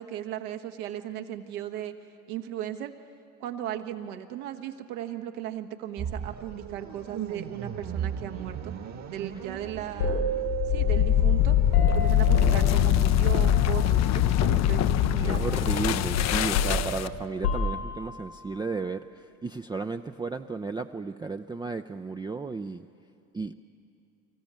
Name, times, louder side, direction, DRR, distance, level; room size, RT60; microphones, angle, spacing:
voice 1, 0.0-1.9 2.3-2.9 3.4-8.7 9.1-10.2 10.7-11.6 11.9-15.4, right 11 dB, 70° right, 5 dB, 1.4 m, -36 dB
sound 1, 6.0-13.1, right 8 dB, 40° right, 1.4 m, -38 dB
sound 2, 10.0-14.4 14.7-14.9 15.2-18.2, left 2 dB, 90° left, 4.4 m, -30 dB
sound 3, 10.4-17.3, left 12 dB, 40° left, 0.5 m, -23 dB
voice 2, 15.2-22.9 23.3-23.5, right 4 dB, 10° right, 6 dB, 0.4 m, -34 dB
25.0 x 15.0 x 8.9 m, 2.5 s
hypercardioid pair, 70°, 45 cm